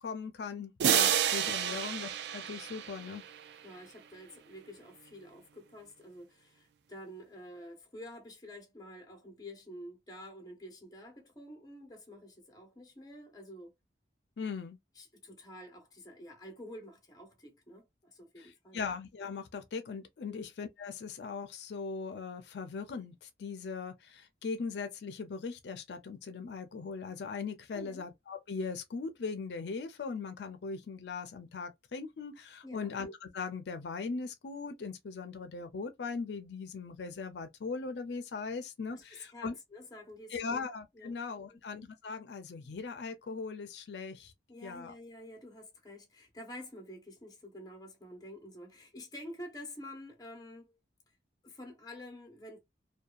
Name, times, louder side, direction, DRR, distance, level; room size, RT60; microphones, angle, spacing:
voice 1, 0.0-3.2 14.4-14.8 18.7-39.6 40.3-44.3 44.6-44.9, left 4 dB, 75° left, 0.4 m, -39 dB
sound 1, 0.8-3.5, right 9 dB, 70° right, 0.3 m, -30 dB
voice 2, 3.6-13.7 14.9-18.8 20.3-20.5 27.7-28.0 32.6-32.9 38.9-40.6 40.9-41.2 41.5-41.6 44.5-50.8 51.4-52.6, left 1 dB, 20° left, 0.8 m, -49 dB
2.7 x 2.2 x 2.3 m
head